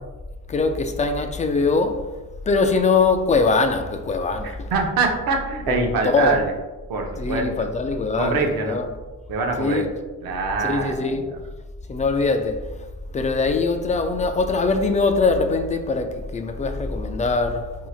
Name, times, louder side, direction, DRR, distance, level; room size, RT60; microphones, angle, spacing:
voice 1, 0.5-2.1 2.5-4.7 5.7-6.4 7.2-8.9 9.6-9.9 10.6-11.3 11.9-12.7 13.1-17.9, left 3 dB, 20° left, 0.3 m, -22 dB
voice 2, 4.7-6.5 6.9-7.5 8.2-8.8 9.3-9.8 10.2-11.3, right 3 dB, 65° right, 0.8 m, -24 dB
4.3 x 2.8 x 2.4 m
supercardioid pair, 75°, 38 cm